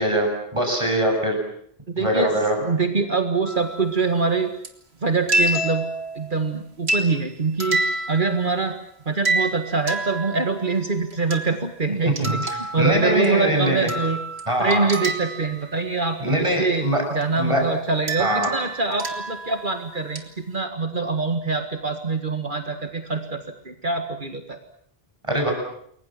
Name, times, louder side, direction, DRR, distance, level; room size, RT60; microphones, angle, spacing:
voice 1, 0.0-1.4 2.0-2.6 12.2-12.4 12.8-13.9 14.5-14.9 16.2-17.0 17.4-17.6 18.2-18.5 25.3-25.5, right 1 dB, 30° right, 2 dB, 8.0 m, -22 dB
voice 2, 1.9-2.3 2.6-4.5 5.0-5.8 6.2-7.8 8.1-8.7 9.1-14.2 14.6-24.6, right 4 dB, 55° right, 6 dB, 2.0 m, -24 dB
sound 1, 3.4-4.0 4.6-4.7 5.3-6.4 6.9-7.3 7.6-8.7 9.2-10.7 11.1-11.6 12.2-13.5 13.9-15.6 17.2-17.3 18.1-19.8 20.2-20.3, right 2 dB, 85° right, 2.7 m, -28 dB
29.5 x 22.5 x 7.6 m, 0.68 s
omnidirectional pair, 1.0 m